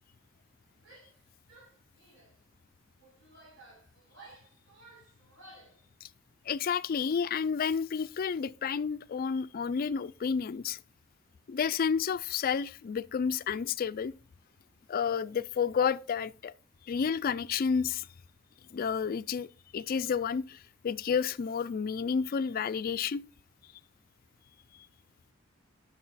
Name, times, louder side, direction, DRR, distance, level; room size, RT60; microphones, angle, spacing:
Female speech woman speaking / Yell, 0.8-1.2 1.5-2.3 3.0-5.8, right 2 dB, 70° right, 5.3 m, -55 dB
voice 1, 6.5-10.8 11.5-14.1 14.9-16.5 16.9-18.1 18.7-20.6 20.8-23.2, left 6 dB, 45° left, 0.4 m, -30 dB
9.3 x 6.6 x 4.0 m
head